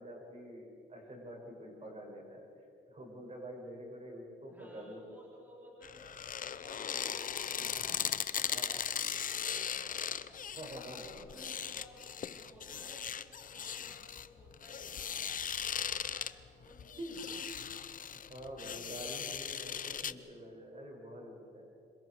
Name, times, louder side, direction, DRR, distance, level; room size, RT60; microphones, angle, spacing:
voice 1, 0.0-2.5 2.9-5.0 8.5-8.7 10.6-11.3 17.0-17.1 18.3-21.7, equal, 35° right, 0 dB, 7.0 m, -47 dB
voice 2, 4.5-6.1 6.5-10.4 11.2-17.7, right 1 dB, 10° right, -5 dB, 4.1 m, -58 dB
sound 1, 5.8-20.1, left 8 dB, 45° left, 0.8 m, -38 dB
27.0 x 26.0 x 4.9 m, 2.7 s
cardioid pair, 90°, 20 cm